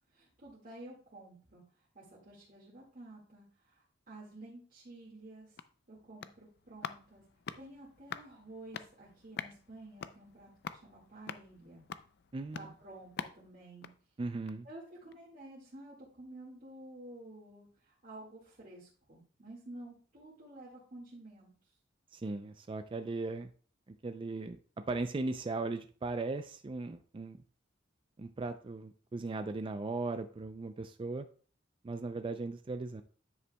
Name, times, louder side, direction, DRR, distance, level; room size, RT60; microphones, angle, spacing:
voice 1, 0.1-5.6 5.9-7.2 7.6-11.8 12.5-13.9 14.6-21.5, right 1 dB, 45° right, -6 dB, 1.9 m, -51 dB
sound 1, 5.2-14.8 15.1-15.2, left 7 dB, 60° left, 0.4 m, -47 dB
voice 2, 12.3-12.7 14.2-14.7 22.1-23.5 24.0-24.6 24.9-27.4 28.2-31.2 31.8-33.0, right 3 dB, 25° right, 8 dB, 0.4 m, -37 dB
9.6 x 8.0 x 2.2 m, 0.42 s
head